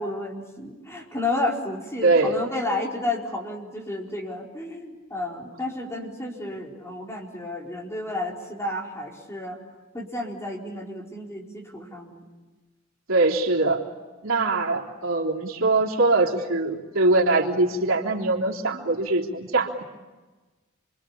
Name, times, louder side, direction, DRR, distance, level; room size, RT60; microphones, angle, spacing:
voice 1, 0.0-9.6 9.9-12.3, left 2 dB, 15° left, -1 dB, 4.6 m, -31 dB
voice 2, 2.0-2.4 13.1-13.8 14.2-19.8, right 2 dB, 85° right, -2 dB, 3.5 m, -22 dB
28.0 x 24.5 x 8.7 m, 1.2 s
head